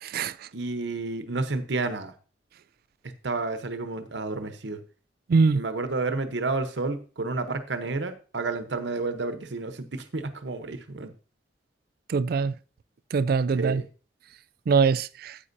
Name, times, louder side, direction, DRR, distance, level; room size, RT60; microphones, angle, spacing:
voice 1, 0.0-0.3 5.3-5.6 12.1-12.5 13.1-13.8 14.7-15.4, right 5 dB, 55° right, 0.3 m, -23 dB
voice 2, 0.5-2.1 3.2-4.8 5.5-11.1 13.5-13.9, right 3 dB, 80° right, 0.9 m, -30 dB
9.7 x 8.5 x 2.7 m
head